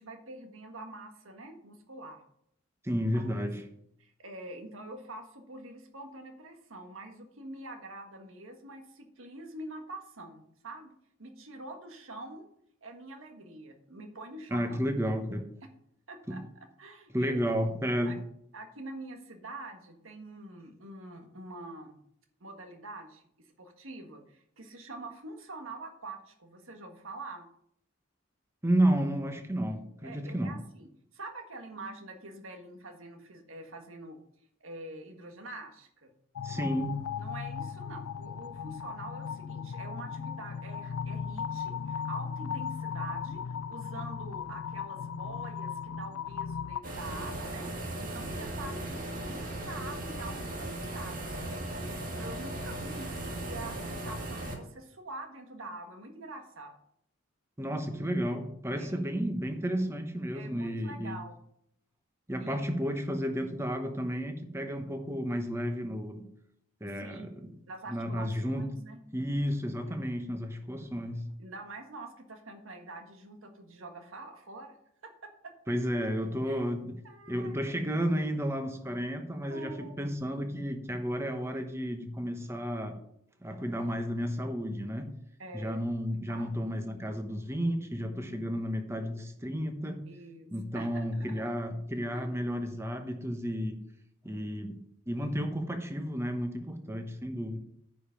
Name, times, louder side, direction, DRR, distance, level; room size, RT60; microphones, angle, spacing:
voice 1, 0.0-2.2 3.1-3.5 4.0-10.9 11.2-12.5 12.8-14.8 16.1-16.4 16.8-17.6 18.0-18.2 18.5-22.0 22.4-27.5 30.0-34.2 34.6-36.1 37.2-56.7 58.7-59.0 60.3-61.4 62.4-62.7 66.9-69.0 69.8-69.9 71.4-74.8 75.0-75.5 76.5-76.6 77.0-77.9 79.5-80.1 85.4-85.8 86.3-86.5 90.1-91.5 92.1-92.3, right 2 dB, 75° right, 5 dB, 1.6 m, -45 dB
voice 2, 2.8-3.6 14.5-15.5 16.3-16.4 17.1-18.2 28.6-30.6 36.4-37.0 57.6-61.2 62.3-66.3 66.8-67.3 67.9-68.7 69.1-71.3 75.7-77.0 77.3-83.0 83.4-85.1 85.5-90.0 90.5-93.8 94.2-97.6, equal, 15° right, 6 dB, 1.1 m, -32 dB
sound 1, 36.4-46.8, left 6 dB, 90° left, 0.4 m, -37 dB
sound 2, 46.8-54.5, right 1 dB, 40° right, 2.0 m, -37 dB
9.7 x 5.2 x 5.7 m, 0.72 s
head